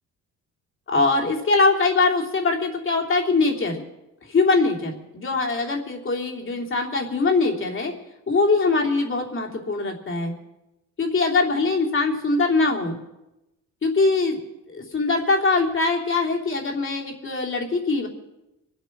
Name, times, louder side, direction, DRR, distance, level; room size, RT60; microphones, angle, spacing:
voice 1, 0.9-3.8 4.2-7.9 8.3-10.3 11.0-13.0 13.8-14.4 14.7-18.1, left 3 dB, 40° left, 1 dB, 3.3 m, -22 dB
24.0 x 8.4 x 6.1 m, 0.94 s
cardioid pair, 90°, 30 cm